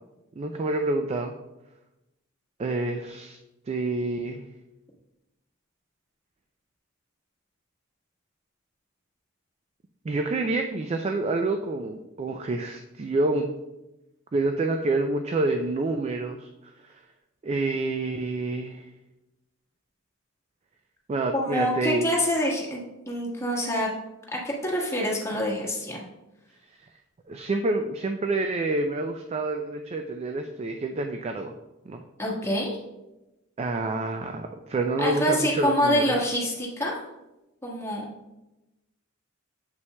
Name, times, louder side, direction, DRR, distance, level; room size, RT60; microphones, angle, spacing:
voice 1, 0.4-1.3 2.6-3.4 3.7-4.4 10.0-13.5 14.3-16.7 17.4-18.9 21.1-22.1 27.3-31.5 31.9-32.0 33.6-36.1, right 2 dB, 30° right, 5 dB, 0.3 m, -28 dB
voice 2, 21.3-22.8 23.1-23.9 24.3-26.0 32.2-32.8 35.0-36.9 37.6-38.0, equal, 15° left, -4 dB, 1.4 m, -26 dB
7.8 x 5.7 x 2.2 m, 0.97 s
head